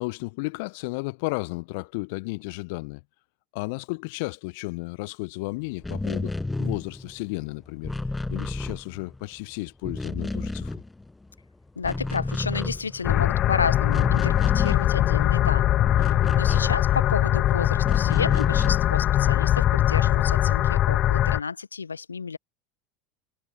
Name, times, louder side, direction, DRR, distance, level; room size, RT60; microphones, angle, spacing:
voice 1, 0.0-3.0 3.5-6.3 6.6-7.9 8.3-10.7, left 28 dB, 55° left, 1.0 m, -33 dB
sound 1, 5.7-9.4 9.7-11.4 11.7-17.3 17.8-19.0, left 2 dB, 10° left, 1.0 m, -32 dB
voice 2, 11.8-22.4, left 5 dB, 80° left, 1.2 m, -31 dB
sound 2, 13.0-21.4, left 13 dB, 40° left, 0.4 m, -21 dB
figure-of-eight pair, 75°, 0 cm